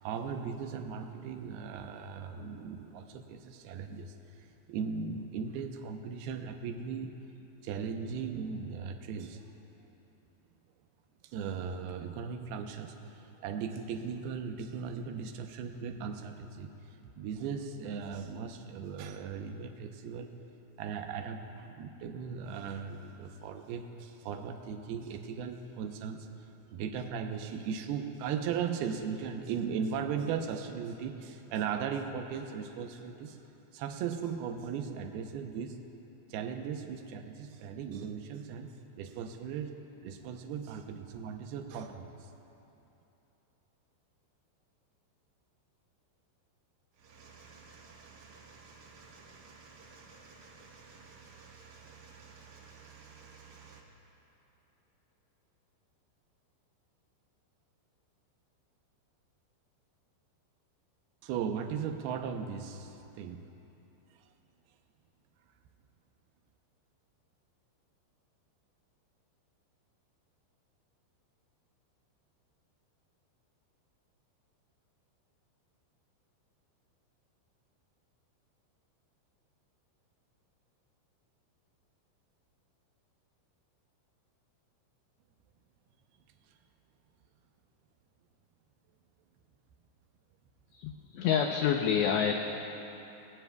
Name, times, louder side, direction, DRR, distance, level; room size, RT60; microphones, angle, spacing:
voice 1, 0.0-7.1 7.6-9.4 11.3-20.4 20.8-33.4 33.7-35.8 36.3-42.3 61.2-63.5, right 6 dB, 80° right, 4 dB, 2.3 m, -38 dB
sound 1, 46.9-53.8, right 5 dB, 65° right, 1.9 m, -54 dB
voice 2, 90.7-92.3, left 8 dB, 80° left, 3 dB, 2.6 m, -28 dB
28.5 x 21.0 x 2.3 m, 3.0 s
omnidirectional pair, 5.5 m